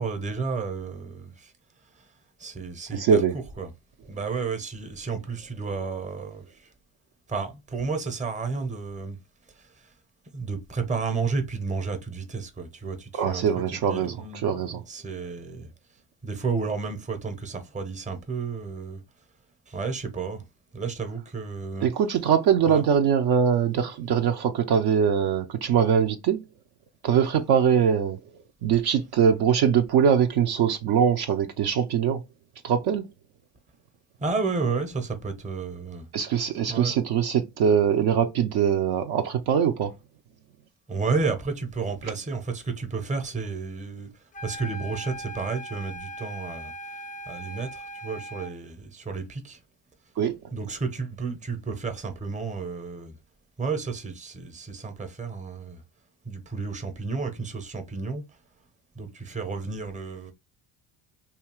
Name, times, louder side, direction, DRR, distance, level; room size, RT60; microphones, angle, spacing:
voice 1, 0.0-1.5 2.4-3.2 3.6-3.7 4.1-6.7 7.3-9.2 9.6-9.7 10.3-13.4 13.9-15.7 16.2-19.0 19.7-20.4 20.7-21.9 22.7-22.8 34.2-36.1 36.7-36.9 40.9-44.1 44.4-46.7 47.3-49.6 50.5-53.2 53.6-55.8 56.3-58.2 59.0-60.3, right 4 dB, 15° right, 0.7 m, -31 dB
voice 2, 2.9-3.3 13.1-14.8 21.8-26.4 27.0-28.2 28.6-32.2 32.6-33.1 36.1-39.9 50.2-50.3, right 7 dB, 55° right, 0.5 m, -22 dB
sound 1, 44.3-48.6, equal, 20° left, 0.3 m, -39 dB
2.7 x 2.3 x 2.9 m
cardioid pair, 95°, 46 cm